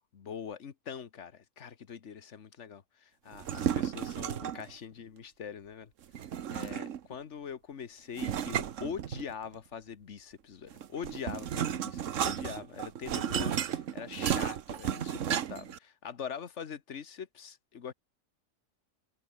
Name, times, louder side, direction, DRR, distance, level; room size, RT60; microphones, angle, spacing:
voice 1, 0.0-5.9 6.5-17.9, left 7 dB, 60° left, 1.6 m, -43 dB
sound 1, 3.3-4.7 6.1-7.1 8.2-9.5 10.7-15.8, right 9 dB, 70° right, 1.3 m, -33 dB
omnidirectional pair, 1.4 m